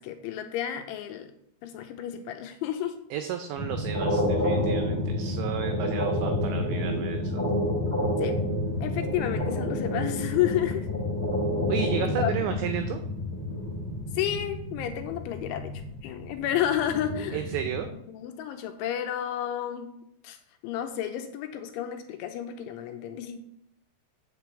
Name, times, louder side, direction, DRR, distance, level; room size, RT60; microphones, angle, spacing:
voice 1, 0.0-1.3 1.6-3.0 8.2-8.4 8.8-10.9 12.2-12.3 14.1-15.7 16.0-17.4 18.1-19.9 20.2-20.4 20.6-23.4, left 11 dB, 80° left, 6 dB, 2.9 m, -31 dB
voice 2, 3.1-7.4 11.7-13.0 17.3-17.9, right 10 dB, 85° right, 7 dB, 2.5 m, -33 dB
sound 1, 3.5-17.9, left 1 dB, 20° left, 1.8 m, -29 dB
8.2 x 6.3 x 7.4 m, 0.76 s
omnidirectional pair, 5.9 m